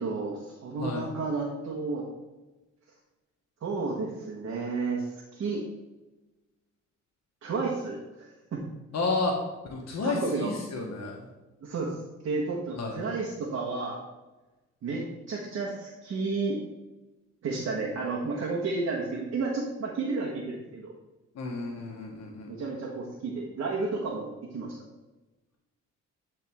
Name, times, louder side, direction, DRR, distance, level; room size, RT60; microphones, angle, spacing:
voice 1, 0.0-2.1 3.6-5.6 7.4-8.0 8.5-8.7 10.0-10.5 11.6-12.0 12.2-14.0 14.8-16.6 17.4-20.9 22.5-24.8, right 3 dB, 55° right, -2 dB, 1.4 m, -32 dB
voice 2, 0.8-1.1 8.9-9.3 9.7-11.3 12.7-13.0 21.3-22.5, left 3 dB, 60° left, 0 dB, 1.4 m, -31 dB
10.5 x 3.8 x 3.6 m, 1.1 s
cardioid pair, 90°, 30 cm